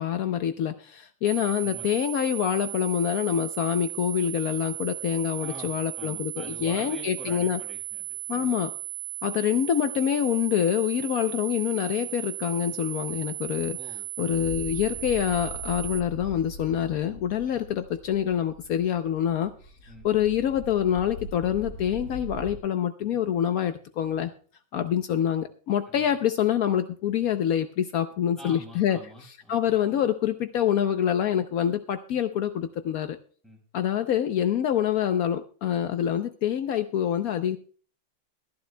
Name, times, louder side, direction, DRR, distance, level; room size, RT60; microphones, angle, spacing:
voice 1, 0.0-7.6 8.3-8.7 9.2-13.8 14.2-19.5 19.8-24.3 24.7-33.2 33.7-37.6, left 10 dB, 75° left, 8 dB, 0.8 m, -26 dB
sound 1, 1.3-16.0, right 17 dB, 55° right, 1.3 m, -36 dB
voice 2, 1.6-1.9 5.4-8.5 13.7-14.4 17.5-17.6 19.9-20.0 25.9-26.1 28.4-29.7 33.4-33.6, equal, ahead, -1 dB, 4.6 m, -46 dB
sound 2, 14.3-22.6, right 1 dB, 40° left, 6.6 m, -41 dB
22.0 x 11.0 x 2.2 m, 0.42 s
omnidirectional pair, 2.3 m